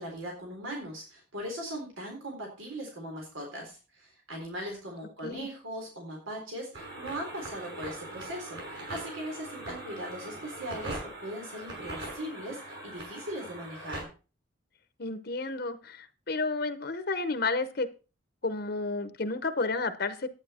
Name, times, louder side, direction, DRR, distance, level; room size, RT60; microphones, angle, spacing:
voice 1, 0.0-14.1, equal, 90° right, 1 dB, 3.9 m, -39 dB
sound 1, 6.7-14.0, right 2 dB, 60° right, 7.0 m, -41 dB
voice 2, 15.0-17.9 18.4-20.3, left 3 dB, 50° left, 10 dB, 0.9 m, -31 dB
11.0 x 9.5 x 4.3 m, 0.34 s
head